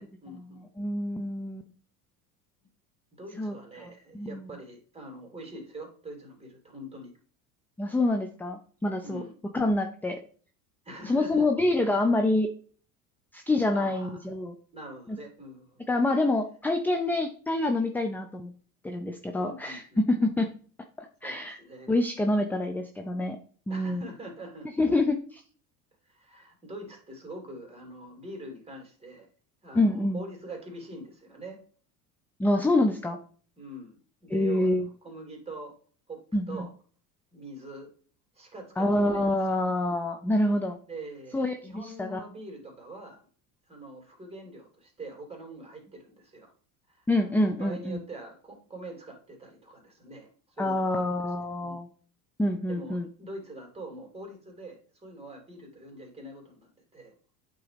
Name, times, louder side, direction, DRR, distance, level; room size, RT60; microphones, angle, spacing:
voice 1, 0.0-0.6 3.2-7.1 9.0-9.3 10.8-11.5 13.7-14.2 14.7-15.9 19.4-20.2 21.2-21.9 23.7-24.7 26.0-29.3 29.6-31.6 33.6-33.9 34.2-34.7 35.0-35.7 36.1-36.2 36.5-36.7 37.3-37.9 38.3-39.3 39.6-39.7 40.9-43.2 43.7-46.5 46.9-50.3 50.6-51.1 51.6-51.8 52.7-57.1, right 1 dB, 15° right, 1 dB, 2.9 m, -44 dB
voice 2, 0.8-1.7 3.4-3.5 3.8-3.9 4.1-4.5 7.8-9.2 9.5-10.2 11.1-12.5 13.3-14.5 15.1-15.2 15.9-18.5 18.8-20.5 21.0-21.6 21.9-23.4 23.7-24.0 24.8-25.4 29.7-30.2 32.4-33.2 34.3-34.9 36.3-36.7 38.8-40.8 41.3-42.2 47.1-48.0 50.6-51.9 52.4-53.1, left 2 dB, 5° left, 6 dB, 0.3 m, -26 dB
8.4 x 3.7 x 3.3 m, 0.44 s
hypercardioid pair, 75°, 46 cm